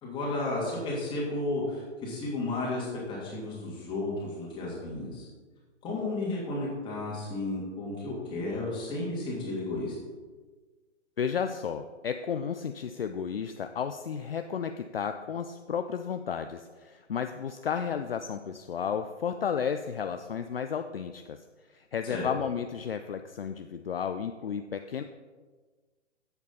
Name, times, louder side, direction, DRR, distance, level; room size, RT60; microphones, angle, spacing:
voice 1, 0.0-5.2 5.8-9.9 22.1-22.3, left 2 dB, 15° left, -4 dB, 2.6 m, -33 dB
voice 2, 11.2-21.4 21.7-25.0, left 7 dB, 50° left, 8 dB, 0.5 m, -33 dB
12.5 x 8.2 x 4.1 m, 1.4 s
figure-of-eight pair, 130°, 37 cm